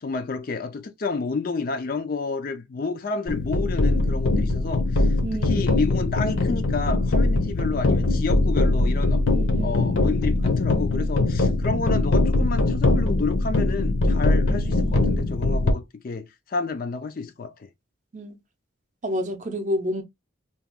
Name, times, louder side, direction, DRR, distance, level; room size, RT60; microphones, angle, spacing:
voice 1, 0.0-9.2 9.6-17.7, left 4 dB, 45° left, 0.4 m, -30 dB
sound 1, 3.3-15.7, left 2 dB, 70° left, 0.8 m, -22 dB
voice 2, 5.2-5.7 9.3-10.1 14.5-15.3 18.1-18.4 19.0-20.0, equal, 35° right, 0.6 m, -30 dB
2.9 x 2.3 x 3.4 m
head